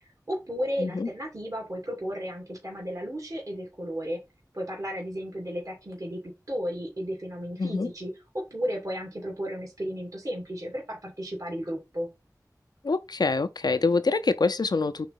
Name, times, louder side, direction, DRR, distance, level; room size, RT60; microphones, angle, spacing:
voice 1, 0.3-4.2 4.5-6.2 6.5-8.1 8.5-12.1, equal, 55° right, 2.7 m, -33 dB
voice 2, 7.6-7.9 12.8-15.1, left 3 dB, 85° left, 0.5 m, -25 dB
4.7 x 3.9 x 5.2 m
wide cardioid pair, 45°, 7 cm